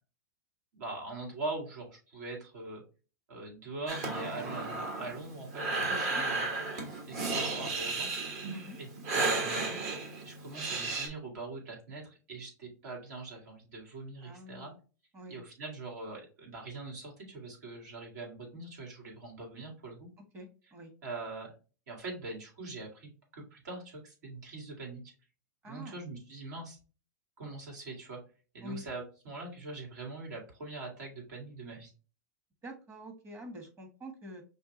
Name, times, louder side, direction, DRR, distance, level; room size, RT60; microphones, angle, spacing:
voice 1, 0.7-2.8 3.3-6.4 7.0-8.1 8.8-8.9 9.1-9.8 10.2-14.7 15.3-20.1 21.0-21.5 21.9-25.0 25.6-26.8 27.4-28.2 28.5-31.9, right 3 dB, 70° right, 0 dB, 2.2 m, -42 dB
Breathing, 3.9-11.1, right 3 dB, 55° right, 1.5 m, -34 dB
voice 2, 5.9-6.2 8.5-8.8 14.2-14.8 15.1-15.4 20.3-20.9 25.6-26.0 28.6-28.8 32.6-34.4, equal, 30° right, 3 dB, 1.3 m, -46 dB
5.4 x 2.3 x 3.0 m, 0.35 s
hypercardioid pair, 110°, 9 cm